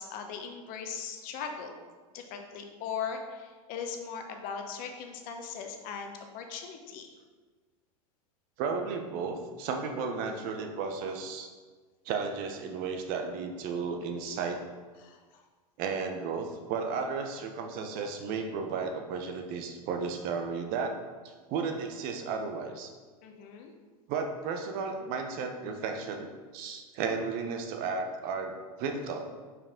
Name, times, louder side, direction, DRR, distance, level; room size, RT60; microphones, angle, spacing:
voice 1, 0.0-1.7 2.1-7.1 10.1-10.5 15.0-15.2 23.2-23.7, left 6 dB, 45° left, 4 dB, 0.9 m, -39 dB
voice 2, 8.6-11.5 12.0-14.6 15.8-21.0 21.2-22.9 24.1-29.3, right 5 dB, 50° right, 5 dB, 0.9 m, -34 dB
5.5 x 4.7 x 3.7 m, 1.4 s
hypercardioid pair, 100°, 19 cm